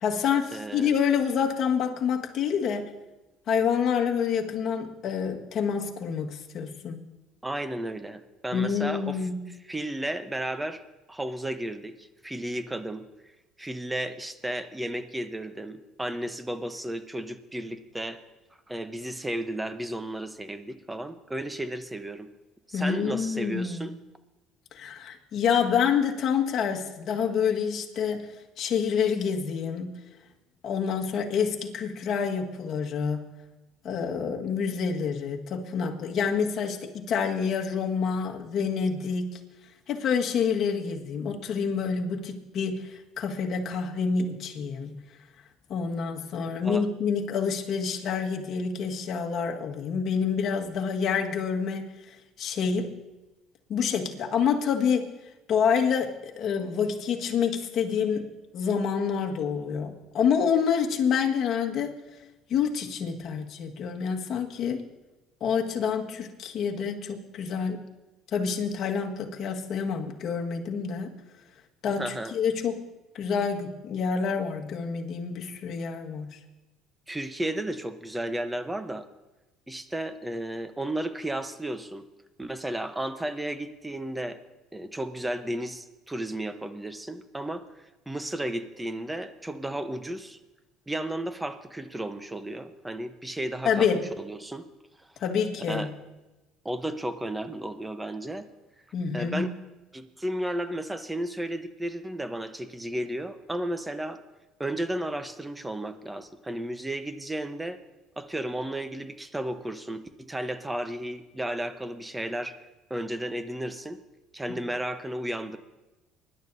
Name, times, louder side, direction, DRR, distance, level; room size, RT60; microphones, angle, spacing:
voice 1, 0.0-2.9 3.5-7.1 8.5-9.4 22.7-23.9 24.7-30.0 30.6-33.3 33.8-39.4 39.9-44.9 45.7-51.9 52.4-52.9 53.7-55.1 55.5-58.3 58.5-61.9 62.5-64.8 65.4-67.8 68.3-71.1 71.8-72.8 73.1-76.4 93.6-94.0 95.2-95.9 98.9-99.5, left 6 dB, 55° left, 2 dB, 1.7 m, -27 dB
voice 2, 0.5-0.9 7.4-9.2 9.7-10.8 11.1-13.1 13.6-18.2 18.7-22.3 22.7-23.9 46.6-46.9 72.0-72.3 77.1-79.1 79.7-82.1 82.4-84.4 84.7-87.6 88.1-90.4 90.9-93.9 94.2-94.7 95.7-95.9 96.6-98.5 99.1-99.5 99.9-104.2 104.6-107.8 108.2-112.6 112.9-114.0 114.3-115.6, right 1 dB, 10° right, 10 dB, 0.9 m, -33 dB
24.5 x 11.0 x 2.7 m, 1.1 s
supercardioid pair, 100°, 0 cm